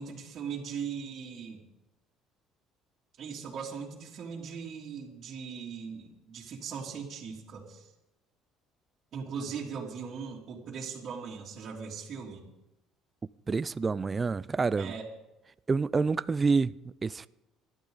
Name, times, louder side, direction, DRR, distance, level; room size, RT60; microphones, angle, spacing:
voice 1, 0.0-1.6 3.2-7.9 9.1-12.4 14.8-15.0, right 6 dB, 50° right, 3.1 m, -39 dB
voice 2, 13.5-14.9 15.7-17.3, right 4 dB, 25° right, 0.4 m, -28 dB
26.0 x 12.0 x 4.0 m
cardioid pair, 100°, 0 cm